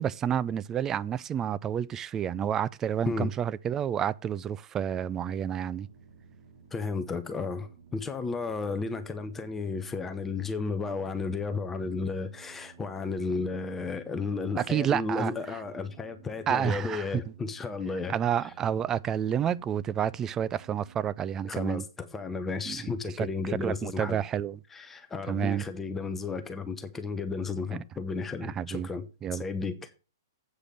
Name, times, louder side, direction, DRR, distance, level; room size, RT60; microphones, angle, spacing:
voice 1, 0.0-5.9 14.6-15.6 16.5-17.2 18.1-21.8 22.7-24.6 25.3-25.6 28.4-28.9 29.2-29.4, right 9 dB, 20° right, 0.4 m, -30 dB
sound 1, 5.0-21.1, right 6 dB, 45° right, 4.1 m, -55 dB
voice 2, 6.7-18.1 18.4-18.5 21.4-24.2 24.7-29.0 29.3-30.0, left 4 dB, 10° left, 0.9 m, -33 dB
8.3 x 5.0 x 7.5 m
figure-of-eight pair, 115°, 2 cm